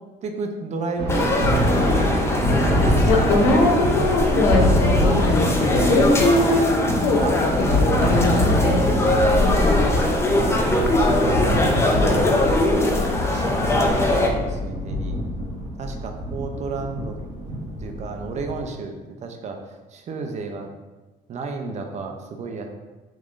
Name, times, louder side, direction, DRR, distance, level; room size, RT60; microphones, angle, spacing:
voice 1, 0.2-1.8 2.8-4.0 5.6-6.4 7.2-7.9 8.2-8.7 10.3-10.8 11.3-15.2 15.8-17.1 17.8-18.9 19.2-19.6 19.9-20.7 21.3-22.7, right 4 dB, 45° right, 4 dB, 0.5 m, -32 dB
Thunder, 1.0-18.7, equal, 70° right, 1.1 m, -24 dB
sound 1, 1.1-14.3, left 1 dB, 15° left, 0.4 m, -22 dB
voice 2, 3.0-6.8 7.0-7.5 7.8-8.9 9.3-9.9, left 2 dB, 90° left, -1 dB, 0.8 m, -21 dB
3.5 x 3.1 x 2.5 m, 1.2 s
cardioid pair, 110°, 17 cm